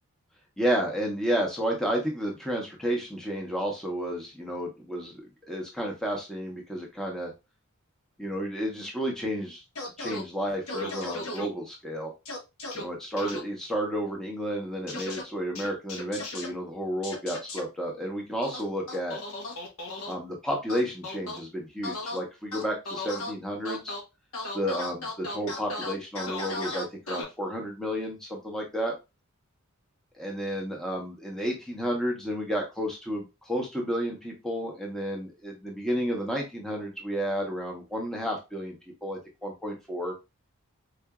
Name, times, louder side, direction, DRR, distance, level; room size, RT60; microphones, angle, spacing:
voice 1, 0.6-5.1 5.5-7.3 8.2-9.6 10.0-12.1 12.7-19.2 20.1-23.9 24.5-28.9 30.2-38.8 39.0-40.1, equal, ahead, -1 dB, 0.8 m, -31 dB
sound 1, 9.8-10.2 10.7-11.5 12.3-12.8 13.2-13.4 14.9-15.2 15.6-16.5 17.0-17.6 18.4-20.1 20.7-21.4 21.8-22.2 22.5-23.3 23.6-24.0 24.3-27.2, left 2 dB, 75° left, 1.2 m, -35 dB
4.6 x 2.6 x 2.2 m, 0.24 s
head